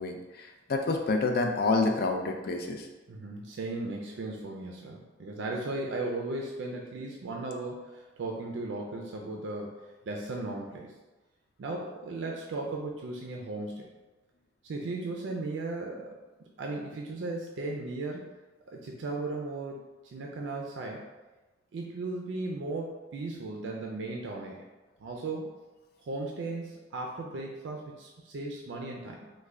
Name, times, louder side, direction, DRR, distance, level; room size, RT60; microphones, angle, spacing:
voice 1, 0.0-2.9, left 3 dB, 55° left, 3 dB, 0.4 m, -28 dB
voice 2, 3.1-9.8 10.1-10.9 11.6-13.9 14.6-16.1 16.6-18.2 18.7-19.8 20.1-21.0 21.7-24.7 25.0-25.5 26.0-29.3, right 2 dB, 75° right, 0 dB, 0.4 m, -36 dB
3.2 x 2.1 x 3.5 m, 1.1 s
head